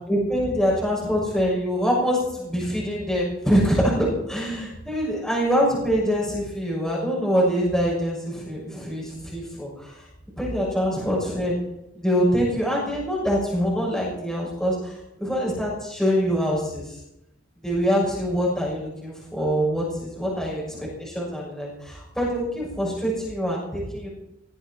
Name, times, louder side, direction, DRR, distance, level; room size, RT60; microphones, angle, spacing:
voice 1, 0.1-10.0 10.4-11.5 12.0-17.0 17.6-24.1, equal, ahead, -5 dB, 6.6 m, -24 dB
19.5 x 15.5 x 4.5 m, 0.86 s
head